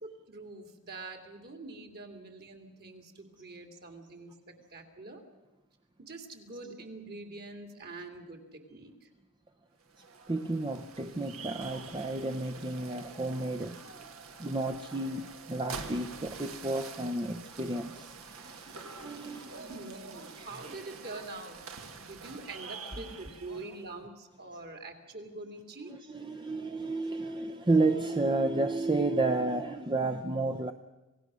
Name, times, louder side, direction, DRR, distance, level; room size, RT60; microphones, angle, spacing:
voice 1, 0.0-5.2 6.0-9.1 19.5-21.6 21.9-25.9, right 2 dB, 45° right, 2.7 m, -45 dB
sound 1, 9.8-23.9, right 4 dB, 70° right, 1.7 m, -46 dB
voice 2, 10.3-13.8 14.4-19.6 25.9-30.7, right 2 dB, 20° right, 0.7 m, -31 dB
27.0 x 17.5 x 6.2 m
head